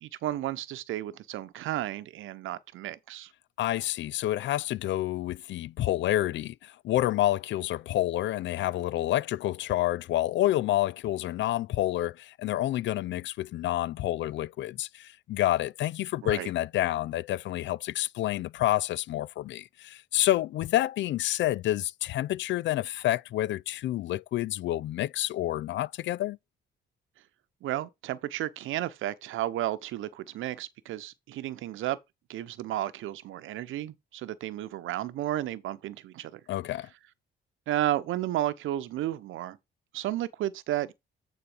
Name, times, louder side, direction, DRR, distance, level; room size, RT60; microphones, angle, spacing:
voice 1, 0.0-3.3 16.2-16.5 27.6-32.0 32.3-36.4 37.7-39.6 39.9-40.9, right 13 dB, 85° right, 0.9 m, -33 dB
voice 2, 3.6-26.4 36.5-36.9, left 14 dB, 70° left, 0.4 m, -28 dB
9.3 x 4.1 x 5.1 m
cardioid pair, 90°, 20 cm